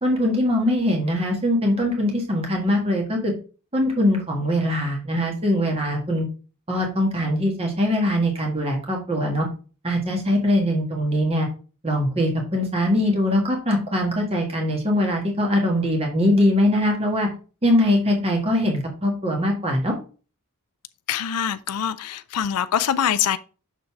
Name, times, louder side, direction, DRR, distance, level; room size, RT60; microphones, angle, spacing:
voice 1, 0.0-3.3 3.7-6.3 6.7-9.5 9.8-11.5 11.8-17.3 17.6-20.0, left 1 dB, 25° right, 1.6 m, -22 dB
voice 2, 21.1-23.4, left 9 dB, 85° left, 0.4 m, -24 dB
6.4 x 4.0 x 5.7 m
head